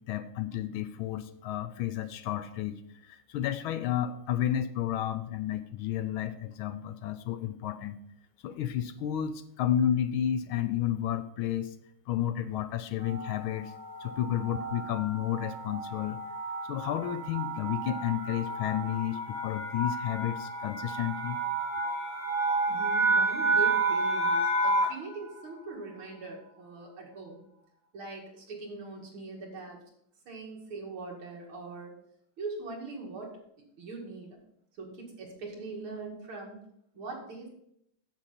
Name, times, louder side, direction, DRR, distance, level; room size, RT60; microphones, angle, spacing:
voice 1, 0.0-8.0 8.4-11.7 12.1-13.7 14.0-16.2 16.7-21.4, left 11 dB, 80° left, 12 dB, 1.4 m, -31 dB
sound 1, 13.0-25.1, right 2 dB, 45° right, 3.9 m, -31 dB
voice 2, 22.7-27.4 27.9-29.8 30.3-31.9 32.4-33.3 33.8-34.4 34.8-36.6 36.9-37.5, right 3 dB, 75° right, -1 dB, 2.9 m, -41 dB
8.8 x 7.6 x 4.2 m, 0.72 s
omnidirectional pair, 2.4 m